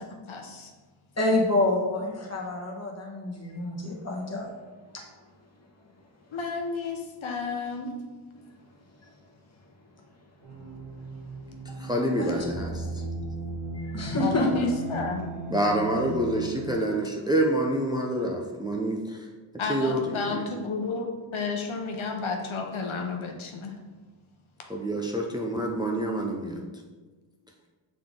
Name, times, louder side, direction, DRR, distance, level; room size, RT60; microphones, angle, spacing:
voice 1, 0.1-0.7 6.3-7.9 14.2-15.3 19.6-23.8, left 4 dB, 70° left, 3 dB, 0.8 m, -32 dB
voice 2, 1.2-4.5 12.2-12.3 13.7-14.7, left 2 dB, 30° left, -2 dB, 1.3 m, -27 dB
sound 1, 10.4-16.8, right 3 dB, 65° right, 1.8 m, -37 dB
voice 3, 11.8-13.0 15.5-19.3 19.7-20.5 24.7-26.6, right 1 dB, 10° right, 0 dB, 0.5 m, -27 dB
6.7 x 3.9 x 3.7 m, 1.3 s
wide cardioid pair, 110°, 49 cm